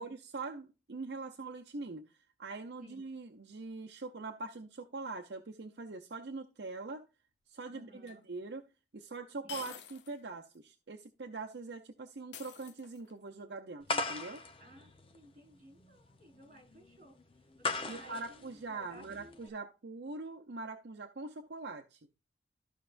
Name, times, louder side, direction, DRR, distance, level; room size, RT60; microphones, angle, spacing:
voice 1, 0.0-7.1 7.5-8.7 8.9-14.4 17.9-22.0, right 3 dB, 70° right, 0.7 m, -43 dB
voice 2, 7.7-8.2 9.4-9.6 14.6-17.1 17.6-19.6, equal, 45° right, 4.9 m, -57 dB
sound 1, 8.1-8.2 9.5-10.2 10.5-10.6 12.3-13.2, left 9 dB, 75° left, 0.7 m, -48 dB
sound 2, 13.9-19.5, left 3 dB, 30° left, 0.8 m, -39 dB
13.5 x 5.4 x 2.5 m
head